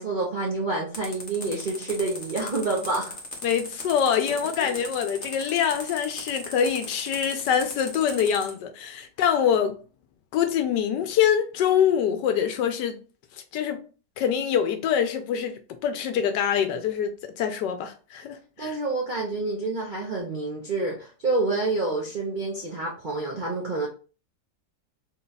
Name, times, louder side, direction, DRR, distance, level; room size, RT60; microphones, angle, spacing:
voice 1, 0.0-3.2 4.6-4.7 18.6-23.9, right 3 dB, 50° right, 0.5 m, -28 dB
sound 1, 0.9-8.5, left 2 dB, 35° left, 0.9 m, -37 dB
voice 2, 3.4-9.8 10.3-13.0 13.5-13.8 14.2-15.5 15.8-18.8, left 8 dB, 80° left, 1.2 m, -25 dB
3.9 x 2.3 x 3.9 m
omnidirectional pair, 1.9 m